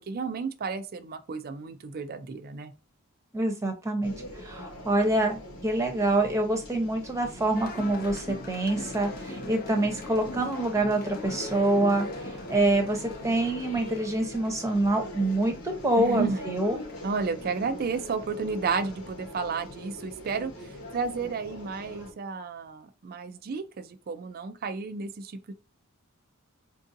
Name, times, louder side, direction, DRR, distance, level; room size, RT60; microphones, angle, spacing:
voice 1, 0.1-2.7 16.0-16.5 17.0-25.5, right 4 dB, 45° right, 0.4 m, -32 dB
voice 2, 3.3-16.8, right 2 dB, 15° right, 0.8 m, -26 dB
sound 1, 4.0-22.1, left 1 dB, 90° left, 1.2 m, -42 dB
sound 2, 7.5-18.2, left 2 dB, 45° left, 0.6 m, -44 dB
4.5 x 2.6 x 2.6 m
head